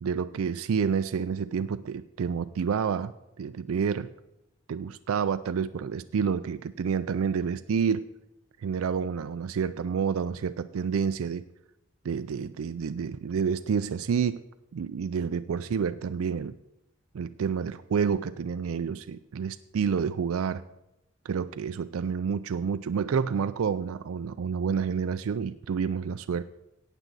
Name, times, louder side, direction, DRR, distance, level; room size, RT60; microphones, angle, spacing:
voice 1, 0.0-4.1 4.7-8.0 8.6-11.4 12.0-14.4 14.7-16.5 17.1-20.6 21.2-26.4, right 6 dB, 85° right, 12 dB, 0.4 m, -29 dB
15.0 x 9.0 x 4.0 m, 0.88 s
head